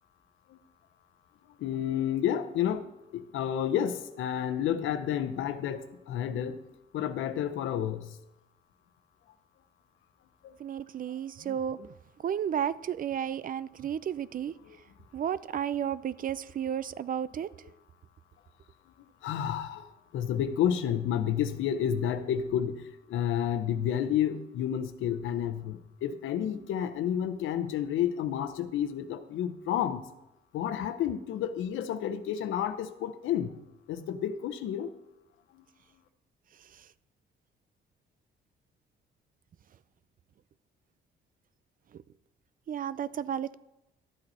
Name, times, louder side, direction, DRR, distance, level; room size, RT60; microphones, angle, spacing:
voice 1, 1.6-2.9 3.1-6.6 6.9-8.1 10.4-10.5 14.6-14.8 19.2-22.8 23.1-30.0 30.5-33.5 33.9-34.9 35.5-35.6, left 9 dB, 85° left, 0.9 m, -30 dB
voice 2, 10.6-11.9 12.2-14.5 15.1-17.5 42.7-43.6, right 9 dB, 45° right, 0.4 m, -32 dB
12.0 x 8.1 x 4.2 m
cardioid pair, 90°, 20 cm